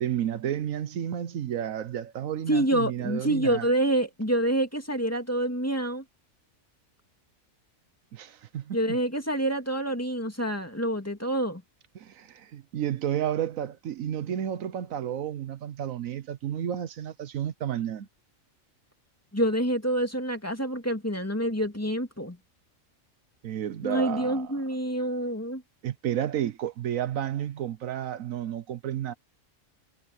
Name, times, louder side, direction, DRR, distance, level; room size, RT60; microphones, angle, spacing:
voice 1, 0.0-3.6 8.1-9.0 11.9-18.1 23.4-24.5 25.8-29.1, right 10 dB, 80° right, 1.2 m, -31 dB
voice 2, 2.5-6.0 8.7-11.6 19.3-22.4 23.8-25.6, right 1 dB, 10° left, 2.5 m, -27 dB
omnidirectional pair, 1.4 m